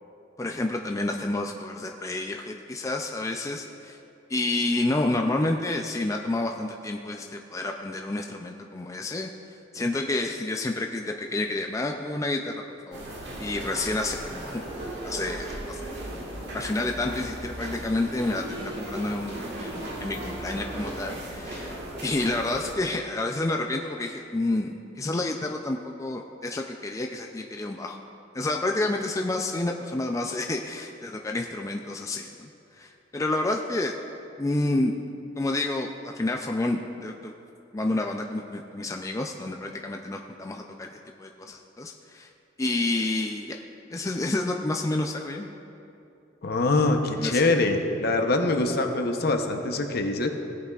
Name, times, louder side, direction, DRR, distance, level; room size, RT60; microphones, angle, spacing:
voice 1, 0.4-4.0 4.3-9.3 9.7-13.0 13.4-14.6 15.0-15.9 16.5-21.8 22.0-28.0 28.3-33.9 34.4-34.9 35.4-37.3 37.7-42.3 42.6-43.6 43.9-45.5 47.2-47.4, left 2 dB, 15° left, 3 dB, 0.4 m, -29 dB
sound 1, 12.9-22.7, right 1 dB, 65° right, 1.5 m, -36 dB
voice 2, 46.4-50.3, left 2 dB, 55° left, 4 dB, 0.8 m, -24 dB
17.0 x 8.1 x 2.4 m, 2.7 s
head